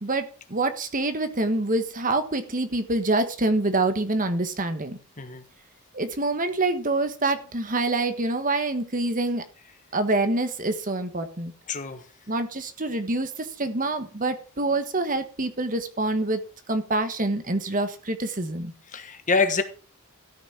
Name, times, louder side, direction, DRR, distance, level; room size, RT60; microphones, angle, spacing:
voice 1, 0.0-5.0 5.9-9.4 9.9-11.5 12.3-16.4 16.7-18.7, right 2 dB, 40° right, 9 dB, 1.4 m, -26 dB
voice 2, 11.7-12.0 18.9-19.6, left 4 dB, 35° left, 9 dB, 1.3 m, -25 dB
13.5 x 6.1 x 6.1 m, 0.38 s
head